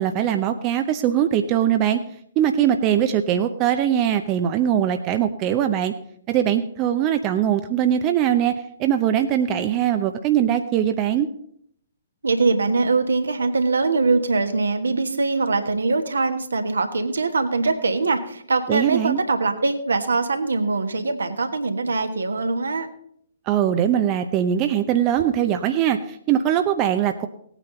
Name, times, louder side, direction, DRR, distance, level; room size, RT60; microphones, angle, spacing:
voice 1, 0.0-2.0 2.4-5.9 6.3-11.3 18.7-19.2 23.5-27.3, right 10 dB, 25° right, 7 dB, 0.7 m, -21 dB
voice 2, 12.2-22.9, right 3 dB, 70° right, 7 dB, 1.4 m, -22 dB
18.0 x 9.1 x 3.9 m, 0.67 s
figure-of-eight pair, 120°, 0 cm